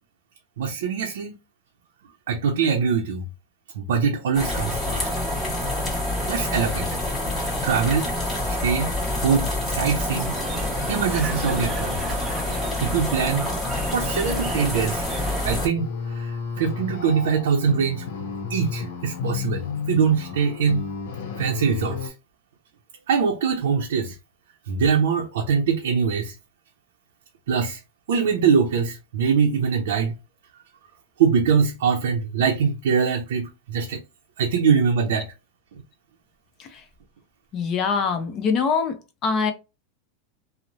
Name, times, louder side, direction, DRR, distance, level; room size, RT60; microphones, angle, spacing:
voice 1, 0.6-1.4 2.3-3.3 3.8-5.1 6.3-6.9 7.4-8.1 8.5-8.9 9.2-10.3 10.9-12.0 12.8-13.5 13.9-15.0 15.4-18.1 18.5-20.9 21.4-22.1 23.1-24.2 24.7-26.4 27.5-27.8 28.1-30.1 31.2-34.0 34.4-35.3, right 6 dB, 80° right, 0.5 m, -23 dB
sound 1, 4.3-15.7, left 1 dB, 15° left, 1.2 m, -27 dB
sound 2, 10.1-15.6, right 4 dB, 15° right, 0.4 m, -37 dB
sound 3, 15.7-22.1, left 5 dB, 80° left, 0.7 m, -32 dB
voice 2, 37.5-38.9 39.2-39.5, left 5 dB, 30° left, 0.6 m, -23 dB
2.9 x 2.0 x 2.5 m
supercardioid pair, 155°, 0 cm